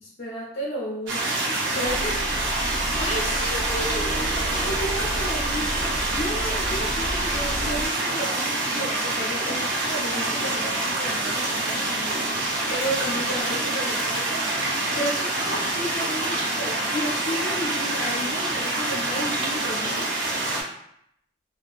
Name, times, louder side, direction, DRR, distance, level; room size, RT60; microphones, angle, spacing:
voice 1, 0.0-2.2 2.9-20.1, equal, 55° left, -5 dB, 0.5 m, -33 dB
sound 1, 1.1-20.6, right 2 dB, 90° right, 0.6 m, -26 dB
sound 2, 1.8-7.9, equal, 15° right, 0.6 m, -33 dB
sound 3, 3.8-8.9, right 4 dB, 55° right, 0.8 m, -42 dB
2.5 x 2.2 x 2.3 m, 0.73 s
head